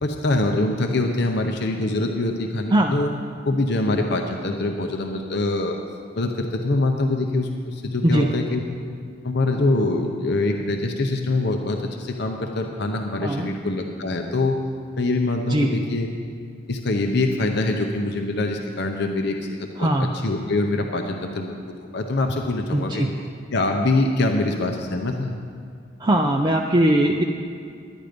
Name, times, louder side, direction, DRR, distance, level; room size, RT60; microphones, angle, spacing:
voice 1, 0.0-3.1 3.4-5.8 6.1-8.6 9.2-14.6 15.0-16.1 16.5-19.9 20.2-21.6 21.9-23.1 23.5-25.3, left 2 dB, 60° left, 3 dB, 0.7 m, -24 dB
voice 2, 19.8-20.1 22.7-23.1 26.0-27.2, right 1 dB, 20° right, 2 dB, 0.5 m, -20 dB
10.5 x 10.5 x 5.1 m, 2.3 s
head